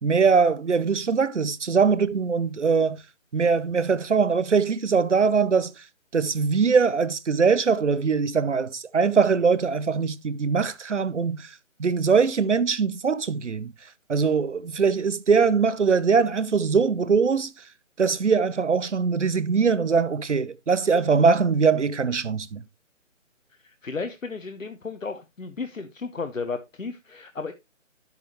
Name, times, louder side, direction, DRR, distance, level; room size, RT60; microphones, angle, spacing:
voice 1, 0.0-3.0 3.3-5.7 6.1-11.5 11.8-13.7 14.1-17.5 18.0-22.6, right 5 dB, 65° right, 0.8 m, -22 dB
voice 2, 23.6-27.5, left 4 dB, 80° left, 0.9 m, -34 dB
11.0 x 6.8 x 2.9 m
figure-of-eight pair, 150°, 39 cm